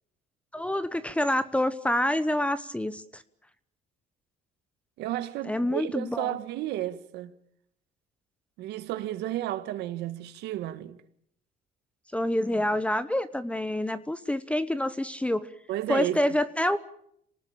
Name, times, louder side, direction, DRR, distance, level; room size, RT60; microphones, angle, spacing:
voice 1, 0.5-3.2 5.4-6.4 12.1-15.5 15.9-16.8, left 1 dB, 5° left, 1.0 m, -27 dB
voice 2, 5.0-7.3 8.6-11.0 15.7-16.2, right 13 dB, 85° right, 1.8 m, -32 dB
26.5 x 19.0 x 9.0 m
cardioid pair, 110°, 17 cm